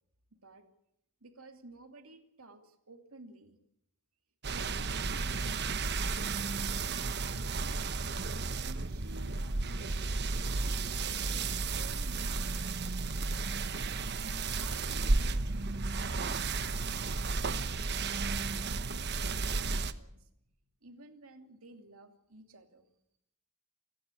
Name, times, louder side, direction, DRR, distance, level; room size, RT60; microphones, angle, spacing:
voice 1, 0.3-0.7 1.2-3.6 4.5-5.6 6.8-7.8 8.6-10.2 10.6-13.0 14.5-17.5 17.9-18.4 18.9-20.3 20.8-22.9, right 2 dB, 80° right, 6 dB, 2.8 m, -54 dB
sound 1, 4.4-19.9, right 3 dB, 50° right, 1.1 m, -33 dB
29.0 x 12.0 x 9.8 m, 0.77 s
head